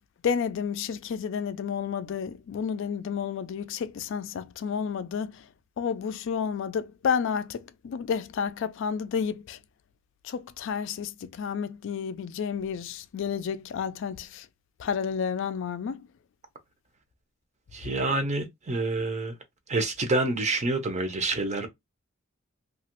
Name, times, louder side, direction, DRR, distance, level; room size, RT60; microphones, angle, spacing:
voice 1, 0.2-5.5 5.8-9.6 10.2-14.5 14.8-16.1, left 7 dB, 65° left, 0.3 m, -31 dB
voice 2, 17.7-19.4 19.7-21.7, right 2 dB, 35° right, 0.7 m, -27 dB
2.9 x 2.4 x 2.9 m
head